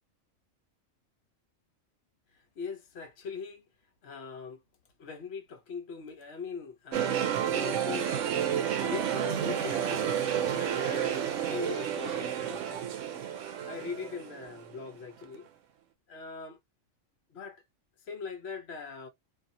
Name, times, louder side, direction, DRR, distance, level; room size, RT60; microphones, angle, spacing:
voice 1, 2.3-3.7 4.0-4.6 5.0-8.2 8.8-12.8 13.7-15.5 16.1-16.6 17.3-17.6 18.1-19.1, left 5 dB, 55° left, 1.0 m, -41 dB
sound 1, 6.9-15.0 15.3-15.4, right 9 dB, 70° right, 0.9 m, -31 dB
2.7 x 2.7 x 2.5 m
omnidirectional pair, 1.4 m